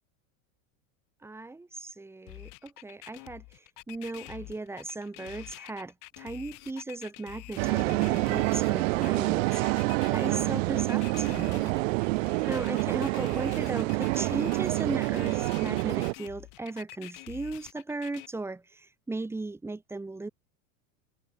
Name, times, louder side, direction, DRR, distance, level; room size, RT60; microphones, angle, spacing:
voice 1, 1.2-11.7 12.5-20.3, right 3 dB, 5° right, 1.4 m, -37 dB
sound 1, 2.3-18.3, left 26 dB, 45° left, 2.6 m, -47 dB
sound 2, 7.6-16.1, right 24 dB, 55° right, 1.0 m, -27 dB
supercardioid pair, 150°, 44 cm